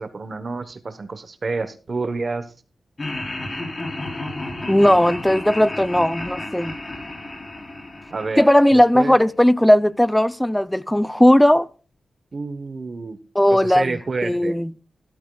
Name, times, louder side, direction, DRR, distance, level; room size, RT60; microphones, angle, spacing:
voice 1, 0.0-2.5 8.1-9.2 12.3-13.2 13.5-14.6, right 3 dB, 45° right, 1.0 m, -29 dB
Laughter, 3.0-9.2, left 2 dB, 30° left, 3.3 m, -32 dB
voice 2, 4.7-6.8 8.4-11.7 13.4-14.7, left 1 dB, 5° left, 0.5 m, -17 dB
15.0 x 12.5 x 2.3 m
wide cardioid pair, 120°, 0 cm